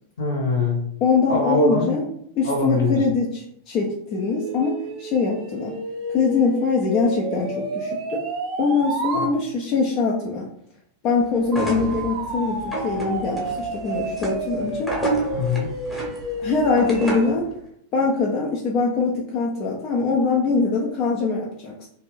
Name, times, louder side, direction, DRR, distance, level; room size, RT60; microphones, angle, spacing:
voice 1, 0.2-0.8 1.3-2.0 2.4-3.0 9.1-9.3 15.3-15.7, left 2 dB, 60° left, 0 dB, 1.0 m, -22 dB
voice 2, 1.0-2.0 2.4-5.7 6.1-8.2 8.6-10.5 11.0-15.0 16.4-17.5 17.9-21.9, left 4 dB, 40° left, -2 dB, 0.5 m, -23 dB
sound 1, 4.1-9.3 11.5-17.4, right 2 dB, 40° right, 0.5 m, -31 dB
sound 2, 11.4-17.4, right 1 dB, 5° left, 1.0 m, -30 dB
3.0 x 2.5 x 3.1 m, 0.69 s
figure-of-eight pair, 90°, 0 cm